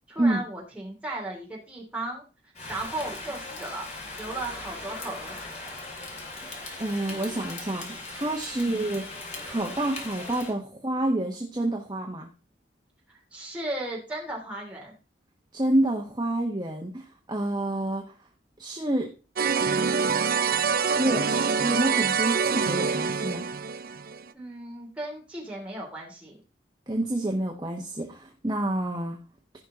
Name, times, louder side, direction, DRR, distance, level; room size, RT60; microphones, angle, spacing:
voice 1, 0.1-2.2 2.7-3.9 4.2-5.5 8.5-8.8 13.1-14.9 24.3-26.4, right 1 dB, 5° right, -3 dB, 3.1 m, -36 dB
Rain, 2.6-10.5, left 2 dB, 35° left, 2.5 m, -39 dB
voice 2, 6.8-12.3 15.5-18.1 18.6-19.1 20.8-23.4 26.9-29.2, right 1 dB, 20° right, 0 dB, 1.3 m, -28 dB
sound 1, 19.4-24.2, right 5 dB, 50° right, 0.5 m, -25 dB
15.0 x 5.6 x 3.8 m, 0.34 s
head